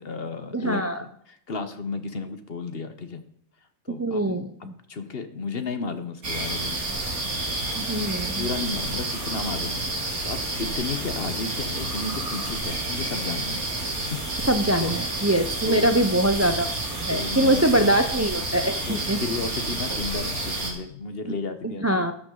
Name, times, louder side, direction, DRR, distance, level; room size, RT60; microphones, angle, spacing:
voice 1, 0.0-3.2 3.9-4.3 4.6-6.8 7.9-14.5 14.8-14.9 15.7-16.0 17.1-17.9 18.9-22.1, left 4 dB, 45° left, 9 dB, 1.2 m, -33 dB
voice 2, 0.5-1.0 4.0-4.7 7.8-8.5 14.5-16.7 17.1-19.2 21.2-21.3 21.6-22.1, right 1 dB, 20° right, 8 dB, 0.4 m, -23 dB
sound 1, 6.2-20.7, right 2 dB, 85° right, 3.2 m, -29 dB
12.5 x 9.4 x 3.9 m, 0.66 s
omnidirectional pair, 1.5 m